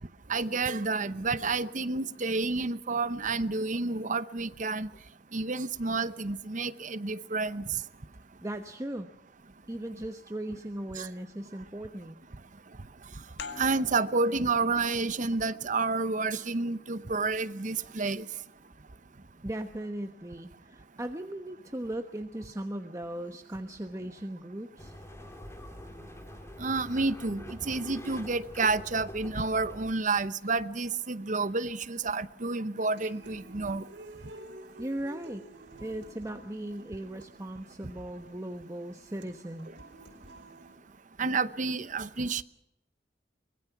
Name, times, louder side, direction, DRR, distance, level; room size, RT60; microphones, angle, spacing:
voice 1, 0.3-4.9 5.3-7.7 11.0-11.1 13.6-18.2 26.6-33.8 41.2-42.4, right 3 dB, 45° right, 0.9 m, -30 dB
voice 2, 8.4-9.1 9.7-12.2 19.4-24.9 34.8-35.4 35.8-39.7, right 1 dB, 20° right, 1.1 m, -38 dB
sound 1, 13.4-18.7, left 4 dB, 70° left, 2.1 m, -49 dB
sound 2, 24.8-29.9, left 1 dB, 15° left, 2.5 m, -45 dB
Human voice / Acoustic guitar, 32.8-40.8, right 2 dB, 85° right, 4.6 m, -50 dB
24.0 x 21.0 x 5.9 m
head